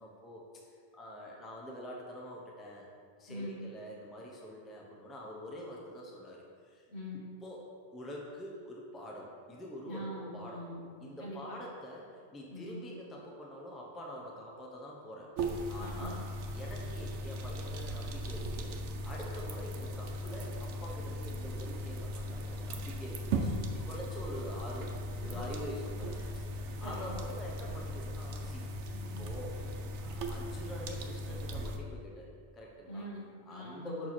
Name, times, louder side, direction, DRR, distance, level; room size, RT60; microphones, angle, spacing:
voice 1, 0.0-2.9 3.2-6.9 7.4-7.6 7.9-10.6 11.0-15.3 15.7-16.2 16.5-18.8 19.0-24.9 25.2-28.7 29.1-29.6 30.0-33.0 33.5-34.1, equal, ahead, -2 dB, 0.6 m, -45 dB
voice 2, 3.3-3.7 6.9-7.3 9.8-11.5 12.5-12.8 15.8-16.2 25.2-25.4 26.2-26.3 26.8-27.2 28.9-29.2 32.9-34.1, left 1 dB, 65° left, -4 dB, 1.5 m, -44 dB
sound 1, 15.4-31.8, right 1 dB, 80° right, 0.9 m, -38 dB
6.2 x 4.6 x 4.2 m, 2.1 s
omnidirectional pair, 1.2 m